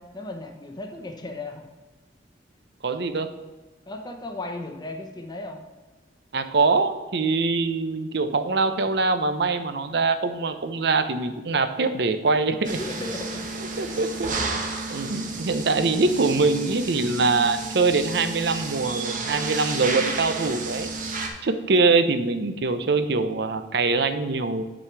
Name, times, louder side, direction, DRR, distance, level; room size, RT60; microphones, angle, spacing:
voice 1, 0.0-1.6 3.9-5.6 12.6-13.4 13.9-14.0, left 2 dB, 25° left, 3 dB, 0.8 m, -36 dB
voice 2, 2.8-3.3 6.3-12.8 13.8-14.6 14.9-20.9 21.4-24.6, right 3 dB, 65° right, 10 dB, 0.7 m, -23 dB
sound 1, 12.6-21.3, right 3 dB, 50° right, 1.2 m, -31 dB
8.4 x 6.1 x 4.6 m, 1.3 s
head